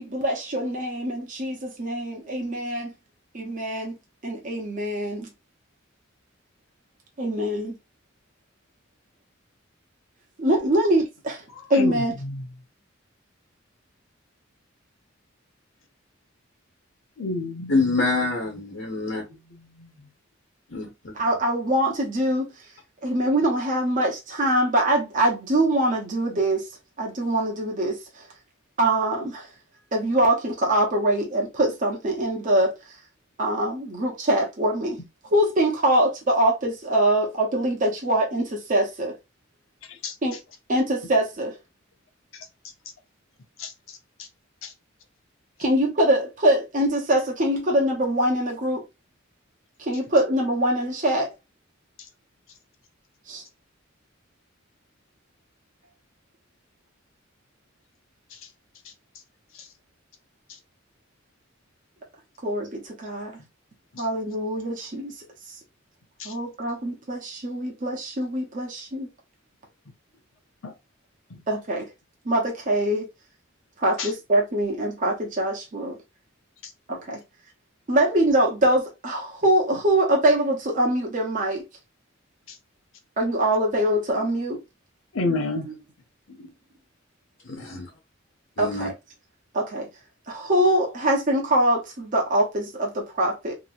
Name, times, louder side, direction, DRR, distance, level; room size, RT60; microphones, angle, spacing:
voice 1, 0.0-2.9 3.3-4.0 4.2-5.3 7.2-7.8 10.4-11.4 11.7-12.2 21.1-22.5 23.0-26.7 27.0-28.3 28.8-29.5 29.9-33.0 33.4-35.0 35.3-39.2 40.2-40.4 40.7-41.6 45.6-48.8 49.8-51.3 53.3-53.4 62.4-63.4 64.0-65.1 65.5-65.6 66.2-69.1 71.5-71.9 72.2-73.1 73.8-76.0 76.9-77.2 77.9-81.6 83.2-84.6 85.7-85.8 87.7-87.8 88.6-88.9 89.5-89.9 90.3-93.6, right 1 dB, 40° right, 0.8 m, -23 dB
voice 2, 11.7-12.4 17.2-17.9 19.8-19.9 40.0-40.1 43.6-43.7 44.6-44.7 66.2-66.3 70.6-70.7 74.0-74.1 85.1-85.7 86.4-86.5, left 3 dB, 85° left, 0.8 m, -29 dB
voice 3, 17.7-19.2 20.7-21.1 87.4-87.9 88.6-88.9, left 3 dB, 65° left, 1.1 m, -26 dB
2.9 x 2.9 x 2.5 m
head